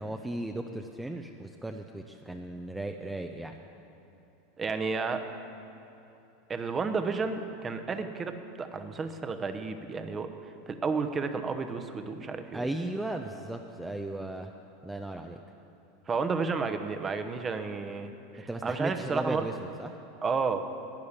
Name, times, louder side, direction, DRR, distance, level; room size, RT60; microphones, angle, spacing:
voice 1, 0.0-3.6 12.5-14.5 14.8-15.4 18.5-20.0, right 1 dB, 10° right, 4 dB, 0.6 m, -36 dB
voice 2, 4.6-5.2 6.5-10.3 10.7-12.6 16.1-19.4 20.2-20.6, right 4 dB, 25° right, 7 dB, 1.0 m, -32 dB
12.0 x 9.5 x 7.2 m, 3.0 s
hypercardioid pair, 95°, 0 cm